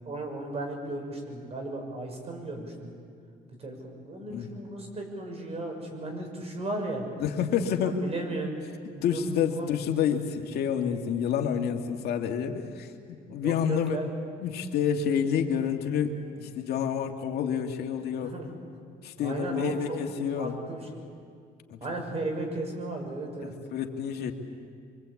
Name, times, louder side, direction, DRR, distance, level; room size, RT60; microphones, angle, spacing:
voice 1, 0.0-2.9 3.6-7.0 7.7-9.7 13.4-14.1 18.2-18.5 19.2-20.0 20.4-21.1 21.8-23.5, right 2 dB, 35° right, 3 dB, 6.6 m, -35 dB
voice 2, 7.2-8.0 9.0-14.0 14.4-18.3 19.0-20.5 21.7-21.8 23.4-24.3, left 8 dB, 70° left, 3 dB, 2.2 m, -29 dB
25.0 x 25.0 x 8.5 m, 2.2 s
cardioid pair, 110°, 17 cm